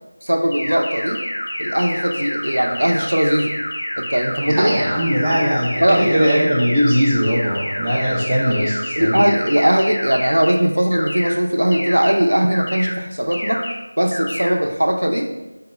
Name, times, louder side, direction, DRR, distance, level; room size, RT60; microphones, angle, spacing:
voice 1, 0.2-1.2 1.6-3.6 4.0-4.7 5.8-6.2 8.9-13.7 14.0-15.3, equal, 80° right, 3 dB, 0.5 m, -19 dB
sound 1, 0.5-10.5 10.9-11.3 11.7-12.1 12.5-12.9 13.3-13.7 14.1-14.5, left 1 dB, 50° left, 0.8 m, -28 dB
voice 2, 4.4-9.2, equal, 5° right, -13 dB, 0.6 m, -19 dB
4.1 x 3.8 x 2.2 m, 1.0 s
figure-of-eight pair, 170°, 0 cm